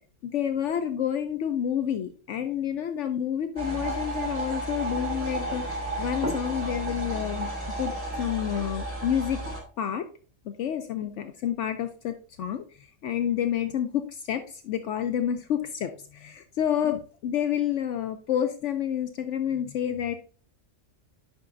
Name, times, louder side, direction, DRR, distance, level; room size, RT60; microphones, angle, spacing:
voice 1, 0.2-7.5 7.8-9.4 9.8-10.1 10.5-20.2, left 9 dB, 70° left, 7 dB, 0.9 m, -29 dB
sound 1, 3.6-9.6, right 1 dB, 25° right, 2.4 m, -32 dB
10.5 x 5.7 x 2.6 m, 0.38 s
omnidirectional pair, 1.3 m